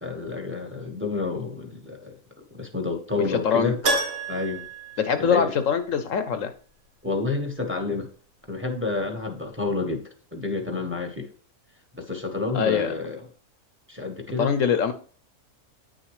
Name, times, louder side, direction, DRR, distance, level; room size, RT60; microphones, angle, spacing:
voice 1, 0.0-2.2 2.5-3.8 4.3-4.6 5.2-5.5 7.0-8.1 8.5-11.3 11.9-13.2 13.9-14.5, left 3 dB, 10° right, 3 dB, 1.2 m, -29 dB
voice 2, 3.2-3.7 5.0-6.5 12.5-12.9 14.4-14.9, left 7 dB, 65° left, 10 dB, 1.1 m, -23 dB
Keyboard (musical), 3.8-5.9 6.1-6.2 9.0-9.1 9.3-9.4, right 2 dB, 60° right, 1.7 m, -29 dB
9.0 x 6.4 x 3.1 m, 0.43 s
omnidirectional pair, 1.5 m